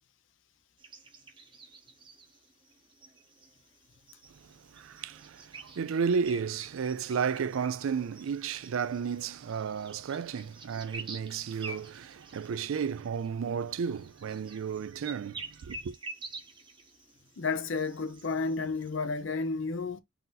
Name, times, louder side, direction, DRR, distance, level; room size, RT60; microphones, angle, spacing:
sound 1, 0.8-19.2, right 3 dB, 25° right, 0.8 m, -49 dB
voice 1, 4.7-15.9, right 6 dB, 85° right, 0.4 m, -33 dB
voice 2, 17.4-20.0, left 4 dB, 65° left, 0.6 m, -31 dB
4.1 x 2.6 x 3.9 m
head